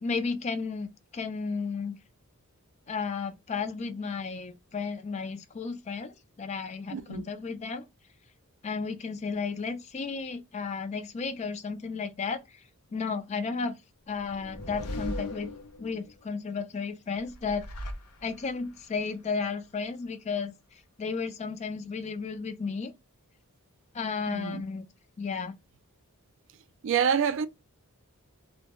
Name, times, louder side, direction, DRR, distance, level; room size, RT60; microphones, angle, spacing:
voice 1, 0.0-2.0 2.9-7.9 8.6-12.6 12.9-13.7 14.1-15.5 15.8-17.6 18.2-20.5 21.0-22.9 23.9-24.9 25.2-25.5, left 5 dB, 30° left, 0.3 m, -33 dB
voice 2, 6.9-7.2 24.3-24.7 26.8-27.5, right 7 dB, 55° right, 0.3 m, -27 dB
sound 1, 14.1-16.1 17.2-18.7, left 1 dB, 90° left, 0.6 m, -38 dB
2.2 x 2.0 x 2.9 m
head